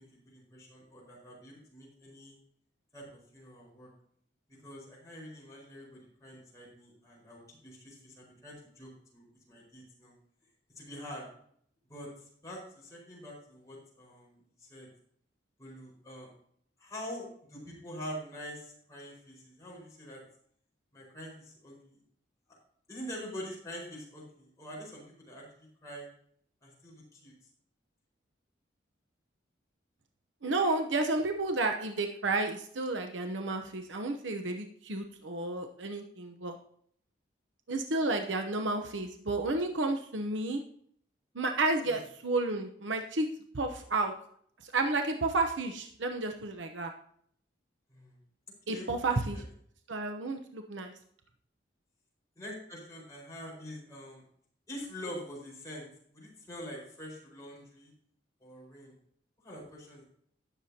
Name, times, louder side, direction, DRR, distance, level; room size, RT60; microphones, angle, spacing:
voice 1, 0.0-2.4 2.9-3.9 4.5-10.1 10.7-11.3 11.9-14.9 15.6-16.3 16.8-20.2 20.9-22.0 22.5-22.6 22.9-26.1 26.6-27.3 41.9-42.0 47.9-48.2 48.7-49.4 52.4-54.2 54.7-57.9 58.4-58.9 59.4-60.0, equal, 20° left, -4 dB, 4.8 m, -45 dB
voice 2, 30.4-36.6 37.7-40.6 41.3-43.3 43.5-44.1 44.6-46.9 48.7-49.4 49.9-50.9, right 2 dB, 80° right, 5 dB, 0.9 m, -31 dB
18.5 x 6.9 x 2.8 m, 0.63 s
head